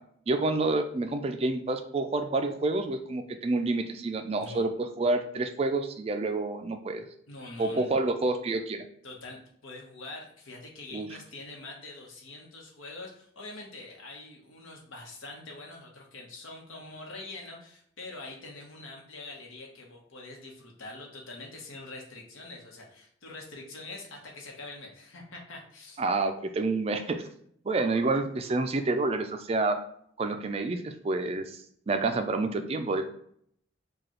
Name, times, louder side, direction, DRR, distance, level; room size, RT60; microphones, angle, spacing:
voice 1, 0.3-7.0 7.6-8.8 10.9-11.1 26.0-27.3 27.6-29.8 30.2-31.6 31.9-33.1, right 3 dB, 30° right, 7 dB, 0.3 m, -28 dB
voice 2, 7.3-8.0 9.0-26.0, left 2 dB, 85° left, 0 dB, 1.0 m, -44 dB
4.8 x 2.3 x 3.0 m, 0.65 s
head